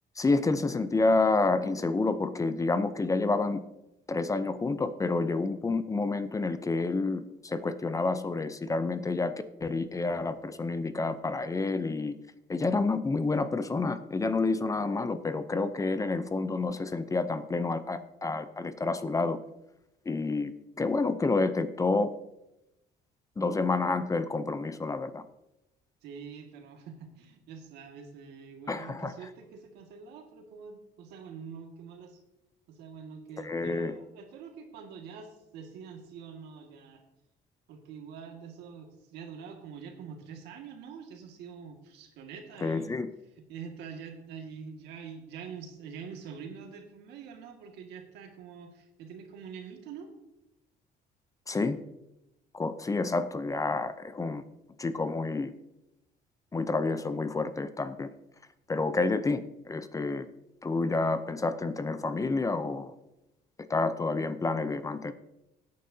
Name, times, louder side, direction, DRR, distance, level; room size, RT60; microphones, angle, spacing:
voice 1, 0.2-3.6 4.1-9.3 9.6-12.2 12.5-19.4 20.1-20.5 20.8-22.1 23.4-25.2 28.7-29.1 33.4-33.9 42.6-43.1 51.5-51.8 52.5-54.4 54.8-55.5 56.5-58.1 58.7-60.3 60.6-62.9 63.7-65.1, left 3 dB, 20° left, 12 dB, 0.6 m, -29 dB
voice 2, 26.0-32.2 32.7-37.0 37.7-42.9 43.4-50.1, right 6 dB, 85° right, 3 dB, 2.0 m, -45 dB
16.5 x 9.3 x 2.8 m, 0.92 s
cardioid pair, 110°, 17 cm